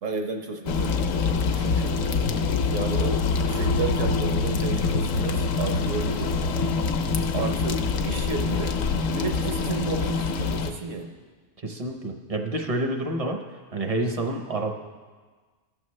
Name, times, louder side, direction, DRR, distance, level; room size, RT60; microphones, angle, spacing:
voice 1, 0.0-1.2 1.5-2.0 2.7-6.4 7.3-8.8 9.1-11.1, right 3 dB, 70° right, 4 dB, 1.3 m, -32 dB
sound 1, 0.7-10.7, left 4 dB, 75° left, 1.0 m, -25 dB
voice 2, 11.6-13.4 13.7-14.7, right 2 dB, 35° right, 3 dB, 0.6 m, -28 dB
14.5 x 6.5 x 3.2 m, 1.4 s
omnidirectional pair, 1.4 m